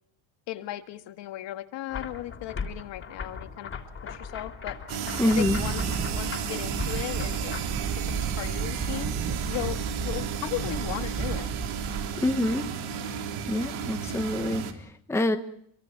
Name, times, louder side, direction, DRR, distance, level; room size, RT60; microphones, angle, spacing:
voice 1, 0.5-3.7 4.0-4.8 5.3-7.5 8.0-9.1 9.5-11.5, left 14 dB, 60° left, 8 dB, 1.9 m, -36 dB
sound 1, 1.9-7.6, left 6 dB, 25° left, 3.5 m, -38 dB
sound 2, 4.9-14.7, right 7 dB, 80° right, 3.8 m, -33 dB
voice 2, 5.2-5.6 12.2-12.7 13.5-15.4, left 1 dB, 5° left, 6 dB, 1.2 m, -26 dB
Wind, 5.3-12.4, right 6 dB, 30° right, 1.2 m, -33 dB
27.0 x 24.0 x 5.9 m, 0.65 s
cardioid pair, 175°, 48 cm